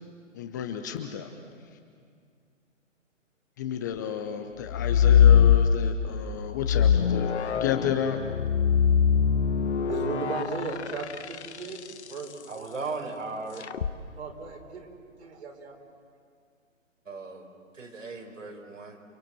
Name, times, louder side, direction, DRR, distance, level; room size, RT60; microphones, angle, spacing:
voice 1, 0.3-1.3 3.6-8.2, left 9 dB, 15° left, 6 dB, 0.6 m, -32 dB
sound 1, 4.7-6.1 6.6-12.1 13.6-13.9, left 8 dB, 60° left, 1.1 m, -22 dB
voice 2, 9.8-12.7 14.2-14.9 15.2-15.8, right 4 dB, 55° right, 3 dB, 4.5 m, -36 dB
voice 3, 12.5-13.7 17.1-17.5 17.7-19.0, right 3 dB, 75° right, 3 dB, 4.9 m, -37 dB
29.5 x 23.0 x 7.5 m, 2.2 s
figure-of-eight pair, 145°, 38 cm